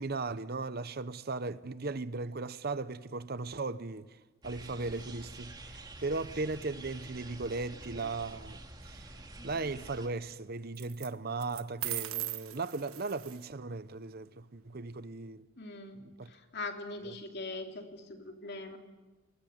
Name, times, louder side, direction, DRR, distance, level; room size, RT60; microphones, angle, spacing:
voice 1, 0.0-4.2 4.4-9.2 9.4-15.5 16.0-16.3 17.0-17.1, right 3 dB, 45° right, 0.8 m, -37 dB
sound 1, 4.4-10.1, right 2 dB, 20° right, 2.2 m, -48 dB
sound 2, 7.9-8.4 10.7-11.1 11.4-13.5, right 16 dB, 90° right, 1.4 m, -39 dB
voice 2, 15.6-18.8, left 2 dB, 50° left, 3.1 m, -42 dB
27.0 x 20.5 x 9.4 m
head